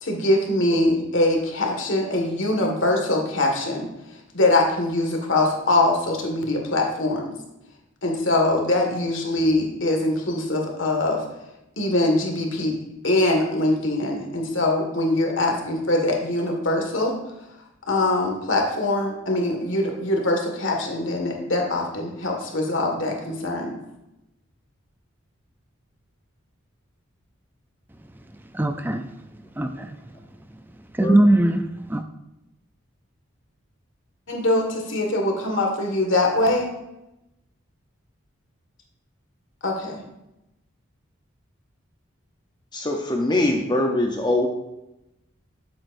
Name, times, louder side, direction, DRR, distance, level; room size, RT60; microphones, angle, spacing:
voice 1, 0.0-3.9 4.3-7.3 8.0-11.2 11.8-12.8 13.0-17.1 17.9-23.8 34.3-36.7 39.6-40.0, left 2 dB, 65° left, 1 dB, 1.8 m, -23 dB
voice 2, 28.5-29.1 29.6-30.0 30.9-32.0, right 1 dB, 10° right, 7 dB, 0.4 m, -20 dB
voice 3, 42.7-44.5, left 1 dB, 20° left, 2 dB, 0.7 m, -22 dB
12.0 x 7.8 x 2.6 m, 0.90 s
head